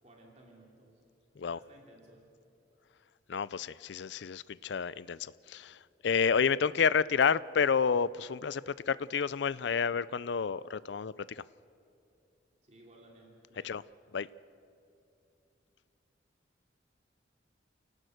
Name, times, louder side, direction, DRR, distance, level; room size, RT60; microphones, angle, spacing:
voice 1, 0.0-1.0 1.3-2.3 12.6-13.7, right 1 dB, 35° right, 0 dB, 2.8 m, -58 dB
voice 2, 3.3-11.4 13.6-13.8 14.1-14.3, left 6 dB, 70° left, 19 dB, 0.4 m, -30 dB
29.0 x 18.0 x 6.4 m, 2.6 s
head